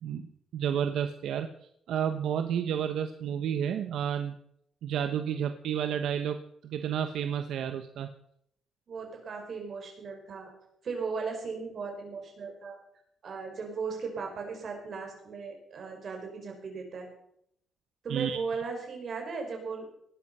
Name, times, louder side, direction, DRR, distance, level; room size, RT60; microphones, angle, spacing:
voice 1, 0.0-1.5 1.9-4.4 4.8-6.4 6.6-8.1 18.1-18.4, right 9 dB, 70° right, 8 dB, 1.1 m, -31 dB
voice 2, 8.9-10.5 10.8-12.8 13.2-17.1 18.0-19.9, right 4 dB, 40° right, 2 dB, 5.6 m, -37 dB
18.5 x 12.5 x 5.6 m, 0.73 s
cardioid pair, 160°, 0 cm